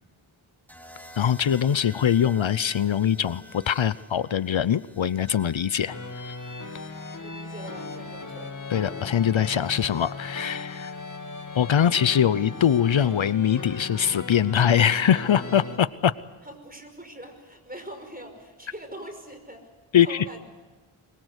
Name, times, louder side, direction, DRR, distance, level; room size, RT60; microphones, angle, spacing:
sound 1, 0.7-8.8 10.0-10.4, equal, 5° left, 3.1 m, -51 dB
voice 1, 1.2-5.9 6.2-6.3 8.7-11.0 11.6-16.1 19.9-20.3, left 9 dB, 70° left, 16 dB, 0.7 m, -22 dB
sound 2, 5.9-15.8, left 3 dB, 40° left, 1.9 m, -37 dB
voice 2, 7.2-8.5 16.4-19.7 20.0-20.4, right 1 dB, 20° right, 5 dB, 5.6 m, -42 dB
24.5 x 22.5 x 8.1 m, 1.2 s
wide cardioid pair, 65°, 48 cm